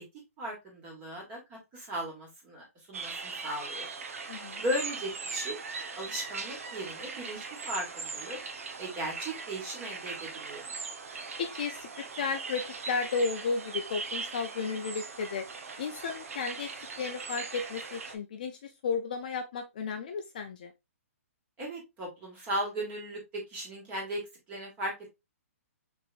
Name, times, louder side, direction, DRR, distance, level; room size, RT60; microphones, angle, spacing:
voice 1, 0.4-3.9 4.6-5.6 6.0-8.4 8.8-10.7 21.6-24.2 24.5-24.9, right 1 dB, 15° right, 1.4 m, -37 dB
sound 1, 2.9-18.2, right 4 dB, 70° right, 0.9 m, -40 dB
voice 2, 4.3-4.6 11.4-11.9 12.2-15.4 15.8-16.7 17.0-20.7, left 5 dB, 35° left, 0.4 m, -33 dB
5.1 x 3.4 x 2.4 m
hypercardioid pair, 175°, 8 cm